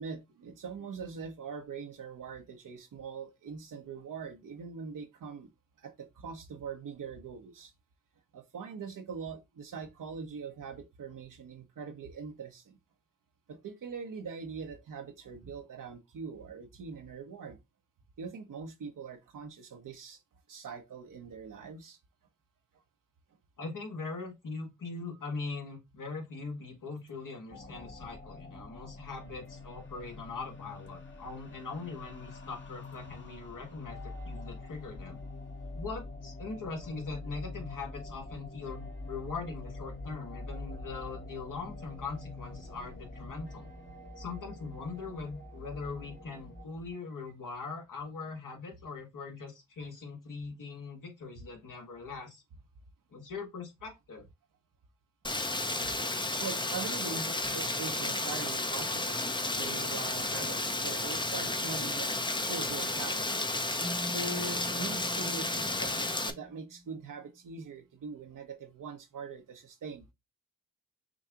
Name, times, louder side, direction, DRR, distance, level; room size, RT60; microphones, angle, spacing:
voice 1, 0.0-5.5 5.8-7.7 8.3-12.8 13.5-17.6 18.2-20.2 20.5-22.0 49.8-49.9 56.4-59.2 59.5-63.3 64.0-70.0, right 5 dB, 75° right, 1.0 m, -42 dB
voice 2, 23.6-35.2 35.7-43.7 44.2-52.4 53.1-54.2, left 4 dB, 70° left, 1.8 m, -41 dB
sound 1, 27.5-46.7, left 2 dB, 35° left, 1.2 m, -45 dB
Rain, 55.2-66.3, left 2 dB, 15° left, 0.7 m, -32 dB
Keyboard (musical), 63.8-67.0, equal, 20° right, 0.9 m, -43 dB
6.3 x 2.3 x 2.8 m
cardioid pair, 50°, 33 cm